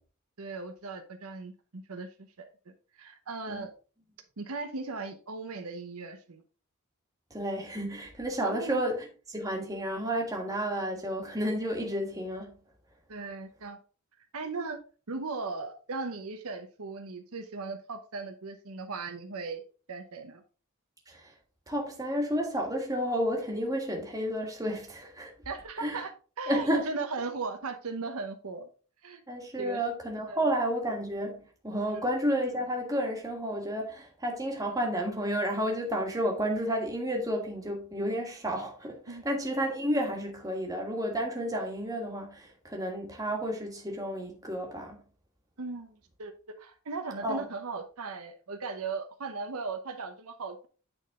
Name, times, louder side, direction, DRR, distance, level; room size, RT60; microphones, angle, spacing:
voice 1, 0.4-2.1 2.4-3.7 4.4-6.4 8.4-8.8 13.1-13.8 14.3-14.8 15.1-19.6 19.9-20.4 25.4-26.1 26.4-28.7 29.0-29.2 29.6-29.8 30.3-30.5 39.1-39.2 45.6-50.7, right 4 dB, 80° right, 0.9 m, -37 dB
voice 2, 7.3-12.5 21.1-21.3 21.7-25.3 25.8-26.0 26.5-26.9 29.3-45.0 47.2-47.4, equal, 15° right, 1.5 m, -31 dB
9.0 x 3.9 x 3.6 m
head